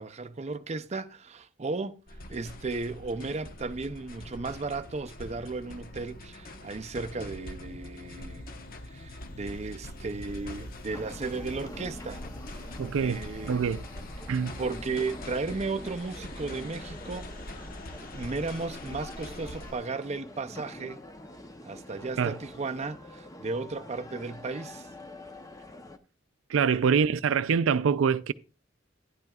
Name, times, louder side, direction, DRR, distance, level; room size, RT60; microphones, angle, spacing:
voice 1, 0.0-2.0 2.3-8.5 8.9-12.2 13.0-13.6 14.6-17.7 18.0-21.0 21.6-24.9 26.6-26.8, right 3 dB, 35° right, 0.5 m, -35 dB
sound 1, 2.1-19.7, left 1 dB, 45° left, 1.0 m, -43 dB
sound 2, 10.9-26.0, left 1 dB, 20° left, 0.7 m, -46 dB
voice 2, 12.8-13.8 14.3-14.5 22.2-22.4 26.5-28.3, right 6 dB, 85° right, 0.4 m, -25 dB
12.0 x 10.5 x 2.3 m
head